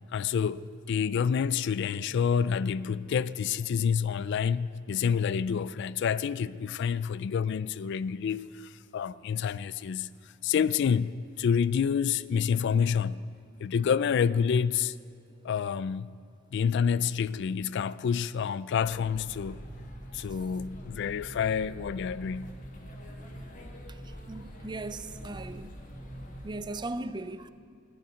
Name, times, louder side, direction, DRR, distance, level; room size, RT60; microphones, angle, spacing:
voice 1, 0.1-10.1 10.4-13.3 13.6-14.9 15.4-16.2 16.5-19.6 20.1-22.5, left 7 dB, 60° left, 0.3 m, -28 dB
sound 1, 18.8-26.6, equal, 40° left, 1.6 m, -44 dB
voice 2, 23.9-25.8 26.4-27.5, right 2 dB, 20° right, 0.4 m, -38 dB
15.5 x 7.1 x 9.5 m
head